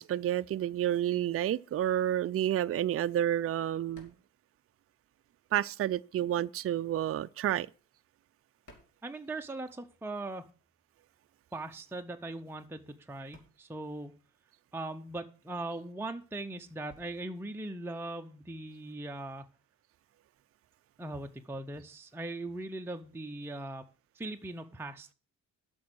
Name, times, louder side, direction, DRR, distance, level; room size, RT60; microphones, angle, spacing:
voice 1, 0.0-4.1 5.5-7.7, right 11 dB, 40° right, 0.4 m, -30 dB
sound 1, 3.9-5.5 5.7-9.9 10.1-18.9, left 1 dB, 60° left, 3.2 m, -64 dB
voice 2, 9.0-10.5 11.5-14.1 14.7-19.5 21.0-23.8 24.1-25.1, right 2 dB, 5° right, 0.7 m, -40 dB
8.5 x 6.2 x 7.7 m
cardioid pair, 90°, 35 cm